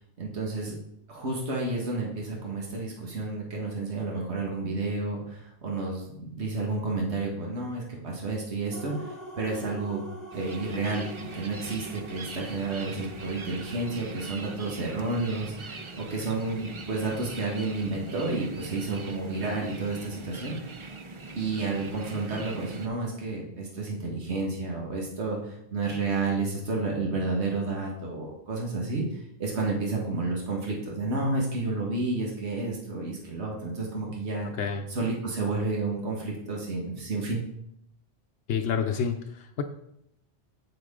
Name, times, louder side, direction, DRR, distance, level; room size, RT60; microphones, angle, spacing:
voice 1, 0.2-0.8 1.1-10.0 10.3-20.6 21.4-34.5 34.9-37.4, right 3 dB, 80° right, -1 dB, 1.9 m, -31 dB
sound 1, 8.7-17.8, right 1 dB, 40° left, 3.0 m, -46 dB
sound 2, 10.3-22.9, right 3 dB, 35° right, 0.5 m, -42 dB
voice 2, 34.5-34.9 38.5-39.6, left 7 dB, 90° left, 4 dB, 1.0 m, -29 dB
8.1 x 7.7 x 3.7 m, 0.75 s
omnidirectional pair, 1.1 m